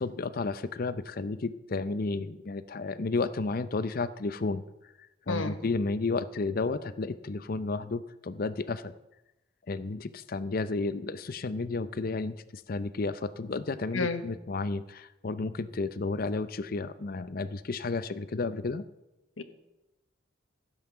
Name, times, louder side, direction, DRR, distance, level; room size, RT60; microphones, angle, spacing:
voice 1, 0.0-4.6 5.3-8.9 9.7-18.8, left 3 dB, 45° left, 14 dB, 0.5 m, -32 dB
voice 2, 5.3-5.5 13.9-14.2 19.4-19.5, left 3 dB, 85° left, 9 dB, 1.1 m, -30 dB
15.5 x 5.7 x 6.8 m, 0.99 s
head